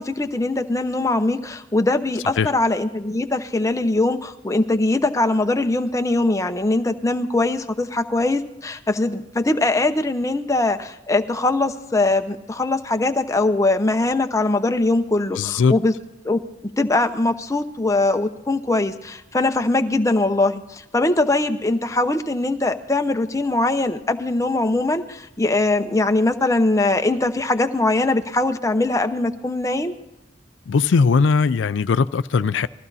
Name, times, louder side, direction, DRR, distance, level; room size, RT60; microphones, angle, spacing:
voice 1, 0.0-15.9 16.2-29.9, left 2 dB, 15° left, 0.8 m, -21 dB
voice 2, 15.4-15.7 30.7-32.7, left 5 dB, 85° left, 0.4 m, -19 dB
20.0 x 14.5 x 4.1 m
head